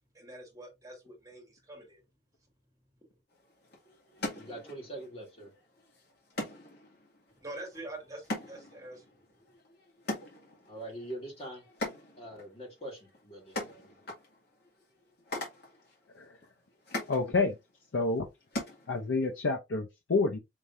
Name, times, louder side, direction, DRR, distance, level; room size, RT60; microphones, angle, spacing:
voice 1, 0.1-2.0 7.3-9.2, right 2 dB, 20° right, 1.8 m, -45 dB
sound 1, 3.3-19.4, left 1 dB, 55° left, 2.0 m, -43 dB
voice 2, 4.3-5.5 10.7-11.6 12.2-14.0, right 1 dB, 30° left, 1.8 m, -43 dB
voice 3, 17.1-17.6 17.9-18.3 18.9-20.4, left 3 dB, 85° left, 0.6 m, -29 dB
5.1 x 3.2 x 2.6 m
head